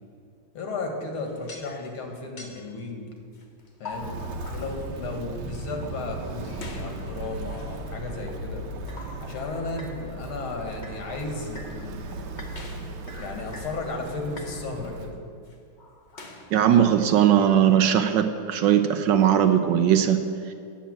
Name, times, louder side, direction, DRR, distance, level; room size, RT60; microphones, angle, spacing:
voice 1, 0.5-3.1 3.8-4.2 4.5-8.6 9.2-12.0 13.2-15.1, left 3 dB, 85° left, 3 dB, 2.5 m, -34 dB
sound 1, 1.2-2.1 2.4-2.8 3.3-5.7 6.4-7.9 8.7-10.0 10.4-11.1 11.6-11.8 12.4-13.9 14.2-14.5 15.3-16.8, left 3 dB, 35° left, 1.3 m, -44 dB
Walk footsteps, 3.9-15.2, right 2 dB, 90° right, 1.8 m, -37 dB
voice 2, 16.5-20.3, right 9 dB, 70° right, 8 dB, 1.2 m, -19 dB
10.0 x 7.2 x 8.9 m, 2.3 s
omnidirectional pair, 2.3 m